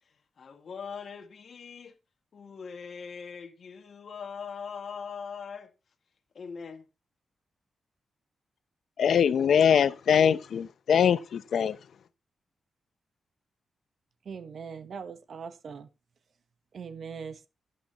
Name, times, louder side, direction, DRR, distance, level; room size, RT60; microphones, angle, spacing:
voice 1, 0.4-1.9 2.3-5.7 6.3-6.9, left 6 dB, 55° left, 2.1 m, -41 dB
voice 2, 9.0-11.8, left 8 dB, 75° left, 0.8 m, -23 dB
voice 3, 14.2-15.9 16.7-17.5, right 6 dB, 60° right, 1.1 m, -40 dB
12.0 x 11.0 x 3.0 m
wide cardioid pair, 120°, 0 cm